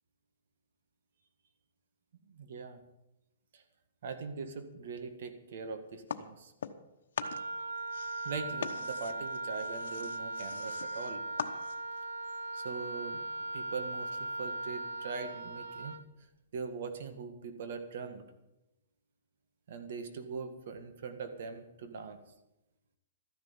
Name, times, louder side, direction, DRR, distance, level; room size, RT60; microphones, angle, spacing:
voice 1, 2.3-2.8 3.5-3.6 4.0-6.5 8.3-11.2 12.5-13.2 13.5-16.0 16.5-18.2 19.7-22.2, right 5 dB, 60° right, 8 dB, 1.8 m, -41 dB
sound 1, 6.1-6.9 7.1-12.0, left 7 dB, 75° left, 1.1 m, -42 dB
Wind instrument woodwind instrument, 7.2-16.1, right 2 dB, 90° right, 0.9 m, -39 dB
13.5 x 10.5 x 7.3 m, 0.91 s
hypercardioid pair, 160°, 0 cm